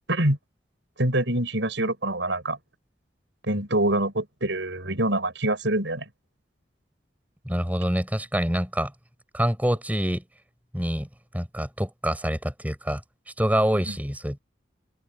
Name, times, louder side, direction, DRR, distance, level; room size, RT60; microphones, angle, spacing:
voice 1, 1.0-2.6 3.4-6.1 13.9-14.0, right 1 dB, 80° right, 6.3 m, -25 dB
voice 2, 7.5-8.9 9.3-10.2 10.7-11.1 11.3-13.0 13.4-14.4, equal, 10° right, 7.4 m, -26 dB
head